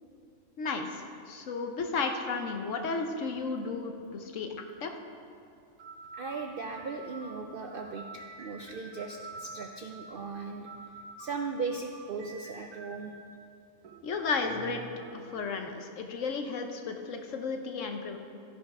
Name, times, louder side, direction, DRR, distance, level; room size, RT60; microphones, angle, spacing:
voice 1, 0.6-4.5 4.8-4.9 14.0-14.8 15.1-18.2, left 4 dB, 65° left, 4 dB, 1.1 m, -33 dB
sound 1, 5.1-5.2 5.8-13.3 13.8-15.5, right 4 dB, 85° right, 1.3 m, -48 dB
voice 2, 6.1-10.7 11.2-13.1, right 4 dB, 65° right, 3 dB, 0.5 m, -38 dB
13.5 x 5.7 x 5.4 m, 2.5 s
omnidirectional pair, 1.5 m